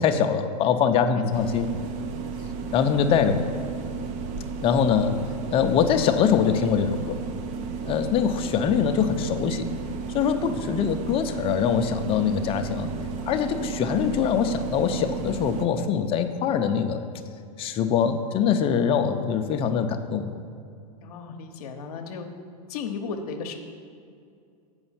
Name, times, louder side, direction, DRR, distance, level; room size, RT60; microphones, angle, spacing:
voice 1, 0.0-1.7 2.7-3.5 4.6-5.1 5.5-7.2 7.8-9.7 10.1-12.9 13.3-17.0 17.6-20.3, left 7 dB, 30° left, 7 dB, 0.5 m, -23 dB
sound 1, 1.3-15.7, right 5 dB, 35° right, 0.6 m, -33 dB
voice 2, 21.0-22.3 22.7-23.5, left 5 dB, 70° left, 4 dB, 0.8 m, -35 dB
7.9 x 5.2 x 5.6 m, 2.4 s
hypercardioid pair, 130°, 20 cm